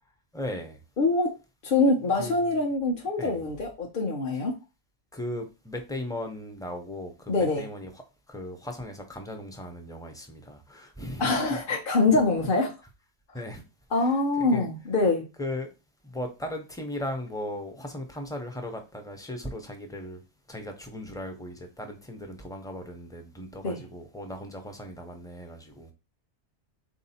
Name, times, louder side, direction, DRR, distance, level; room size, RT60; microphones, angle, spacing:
voice 1, 0.3-0.8 2.2-2.7 3.2-3.4 5.1-8.0 8.3-11.6 13.3-13.6 14.0-14.7 15.4-15.7 16.0-20.2 20.5-25.9, left 1 dB, 5° left, 0.6 m, -37 dB
voice 2, 1.0-1.4 1.6-4.5 7.3-7.7 11.2-12.7 13.9-15.3 23.6-23.8, left 3 dB, 50° left, 0.9 m, -24 dB
3.8 x 2.8 x 4.2 m
omnidirectional pair, 1.2 m